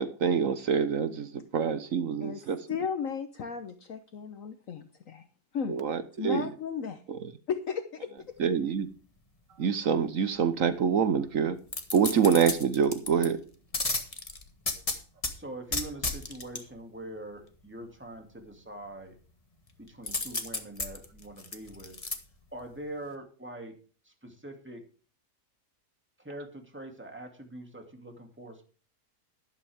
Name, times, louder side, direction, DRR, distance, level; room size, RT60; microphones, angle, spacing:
voice 1, 0.0-2.6 5.7-6.5 7.1-7.2 8.4-8.9 9.6-11.6 11.9-13.4, right 7 dB, 60° right, 1.2 m, -26 dB
voice 2, 2.7-5.3 5.5-5.8 6.2-7.0 7.5-8.4, left 6 dB, 60° left, 1.3 m, -35 dB
sound 1, 11.7-13.3 13.7-15.3 15.7-16.6 20.1-22.1 22.6-22.7, left 3 dB, 25° left, 1.5 m, -32 dB
voice 3, 15.3-19.2 19.8-22.0 22.5-23.7 24.1-24.8 26.2-28.7, right 1 dB, 5° right, 2.4 m, -43 dB
12.0 x 12.0 x 3.5 m
omnidirectional pair, 1.7 m